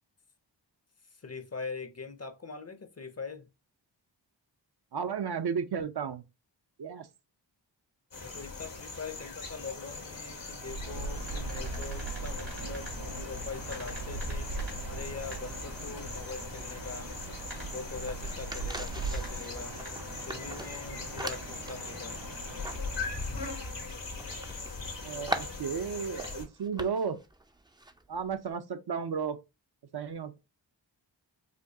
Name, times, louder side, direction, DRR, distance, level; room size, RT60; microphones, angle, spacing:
voice 1, 1.1-3.5 8.2-17.1 17.7-19.7 20.3-22.2, left 4 dB, 35° left, 0.6 m, -42 dB
voice 2, 4.9-6.2 6.8-7.1 25.0-27.2 28.1-29.4 29.9-30.4, right 6 dB, 60° right, 0.6 m, -33 dB
sound 1, 8.1-26.4, left 3 dB, 85° left, 1.4 m, -41 dB
sound 2, 10.6-23.6, right 3 dB, 80° right, 2.3 m, -40 dB
sound 3, 17.9-28.6, right 2 dB, 10° right, 0.4 m, -44 dB
5.0 x 2.2 x 2.7 m
wide cardioid pair, 50°, 44 cm